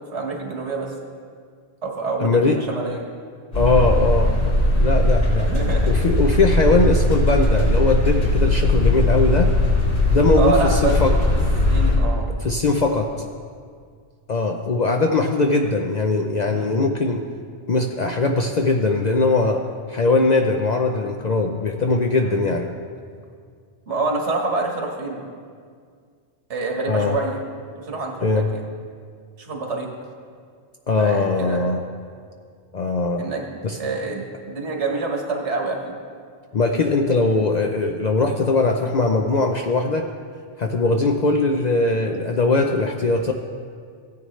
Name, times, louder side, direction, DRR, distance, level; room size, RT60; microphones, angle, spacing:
voice 1, 0.1-0.9 1.8-2.4 2.7-3.1 5.5-5.9 10.4-11.0 11.3-11.4 11.7-12.3 16.5-16.7 22.2-22.4 23.9-25.2 26.5-27.4 27.7-28.6 29.4-29.9 31.0-31.6 33.2-35.9, right 3 dB, 75° right, 1 dB, 1.7 m, -26 dB
voice 2, 2.2-2.6 3.5-4.3 4.8-5.5 5.9-9.5 10.1-11.1 12.4-13.1 14.3-17.2 17.7-19.6 19.9-22.7 26.9-27.2 28.2-28.5 30.9-31.8 32.7-33.2 33.6-33.8 36.5-40.1 40.6-43.3, left 3 dB, 50° left, 3 dB, 0.5 m, -20 dB
sound 1, 3.5-12.0, left 1 dB, 80° left, 2.7 m, -19 dB
15.5 x 9.5 x 3.2 m, 2.1 s
omnidirectional pair, 1.2 m